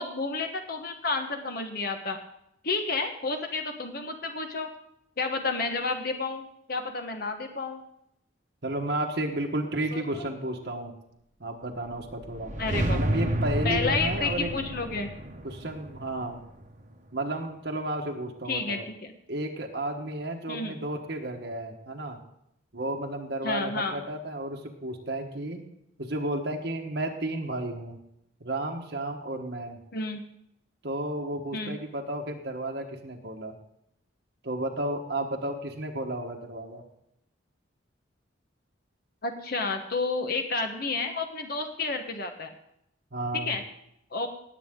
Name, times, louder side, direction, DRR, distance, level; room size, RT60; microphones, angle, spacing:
voice 1, 0.0-2.2 2.6-4.7 5.2-7.8 9.9-10.3 12.6-13.3 13.6-15.1 18.5-19.1 20.5-20.7 23.4-24.0 29.9-30.2 31.5-31.8 39.2-42.5 43.4-43.6 44.1-44.3, left 3 dB, 50° left, 5 dB, 1.1 m, -31 dB
voice 2, 8.6-10.9 11.4-12.5 12.9-14.5 15.4-16.4 17.1-18.9 19.3-22.2 22.7-25.6 26.0-28.0 28.4-29.8 30.8-33.5 34.4-36.8 43.1-43.6, right 1 dB, 55° right, 2 dB, 1.3 m, -32 dB
sound 1, 12.0-17.1, right 1 dB, 40° right, 1.1 m, -31 dB
18.5 x 8.2 x 3.7 m, 0.77 s
head